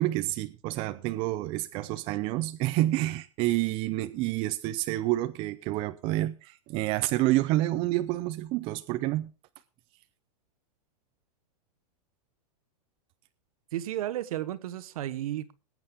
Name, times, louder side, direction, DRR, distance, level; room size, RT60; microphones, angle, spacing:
voice 1, 0.0-9.3, right 16 dB, 25° right, 0.6 m, -28 dB
voice 2, 13.7-15.5, right 13 dB, 60° right, 1.3 m, -33 dB
20.5 x 8.9 x 3.6 m
supercardioid pair, 165°, 21 cm